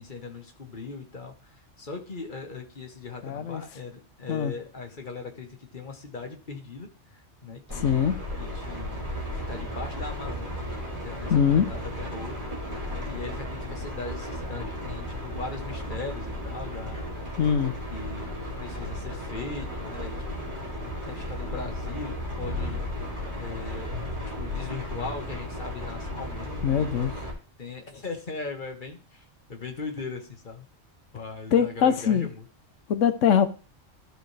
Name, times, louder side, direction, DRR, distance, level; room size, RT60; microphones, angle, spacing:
voice 1, 0.0-6.9 7.4-8.1 8.4-9.2 9.5-10.6 10.9-12.4 13.1-17.3 17.9-22.8 23.3-24.0 24.4-27.1 27.6-29.2 29.5-30.6 31.1-32.4, left 4 dB, 40° left, 1.4 m, -39 dB
voice 2, 3.2-3.6 4.3-4.5 7.7-8.2 11.3-11.7 17.4-17.7 26.6-27.1 31.5-32.3 32.9-33.5, left 8 dB, 75° left, 1.1 m, -22 dB
sound 1, 7.7-27.3, left 1 dB, 40° right, 2.8 m, -34 dB
13.0 x 4.6 x 3.3 m
omnidirectional pair, 1.3 m